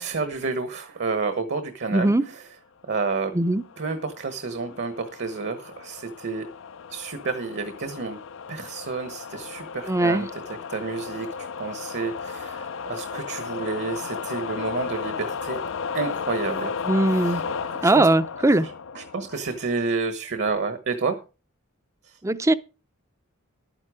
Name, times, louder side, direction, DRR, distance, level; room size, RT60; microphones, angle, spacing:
voice 1, 0.0-2.5 2.9-3.3 3.8-6.5 6.9-8.2 8.5-11.3 11.6-15.6 15.9-18.1 18.6-21.2 22.0-22.2, right 4 dB, 55° right, 1.2 m, -30 dB
voice 2, 1.9-2.2 3.3-3.6 9.9-10.3 16.9-17.4 17.8-18.7 22.2-22.5, right 2 dB, 15° right, 0.6 m, -20 dB
sound 1, 3.4-19.9, left 5 dB, 65° left, 0.6 m, -34 dB
12.0 x 9.9 x 4.9 m
head